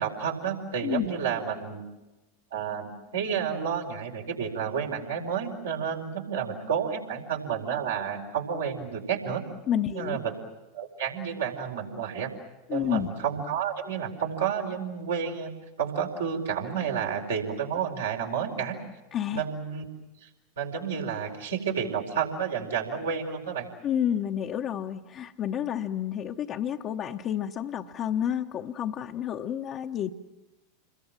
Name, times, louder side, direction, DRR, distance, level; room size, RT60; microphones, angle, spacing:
voice 1, 0.0-1.8 2.5-9.4 9.9-10.3 10.7-12.3 12.7-15.5 15.8-18.8 19.3-19.8 20.2-20.3 20.6-23.7, right 7 dB, 75° right, 1 dB, 4.8 m, -30 dB
voice 2, 9.7-10.2 12.7-13.1 19.1-19.4 23.8-30.1, left 9 dB, 40° left, 1 dB, 1.0 m, -30 dB
29.0 x 22.0 x 7.5 m, 1.1 s
figure-of-eight pair, 90°, 0 cm